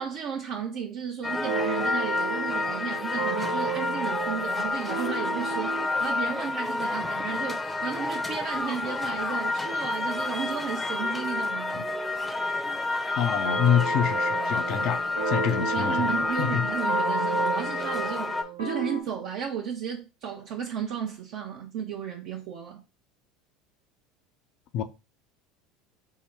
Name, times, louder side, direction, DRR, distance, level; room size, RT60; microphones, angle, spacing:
voice 1, 0.0-11.8 15.6-22.8, right 7 dB, 60° right, 0.5 m, -34 dB
sound 1, 1.2-18.4, left 2 dB, 15° left, 0.6 m, -29 dB
sound 2, 1.2-6.0 13.4-19.0, right 4 dB, 90° right, 0.8 m, -33 dB
voice 2, 13.2-16.6 24.7-24.8, left 9 dB, 60° left, 0.4 m, -27 dB
3.6 x 2.1 x 4.3 m
hypercardioid pair, 75°, 0 cm